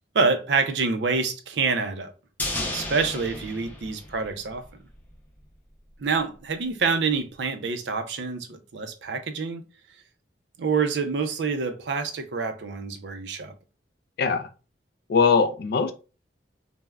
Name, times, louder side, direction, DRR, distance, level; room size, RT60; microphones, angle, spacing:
voice 1, 0.1-2.1 2.7-4.6 6.0-9.6 10.6-13.5, right 4 dB, 80° right, 0.4 m, -26 dB
sound 1, 2.4-4.8 5.1-5.2, left 1 dB, 10° left, 0.6 m, -33 dB
voice 2, 14.2-14.5 15.1-15.9, left 5 dB, 60° left, 0.4 m, -21 dB
3.4 x 2.0 x 2.2 m
head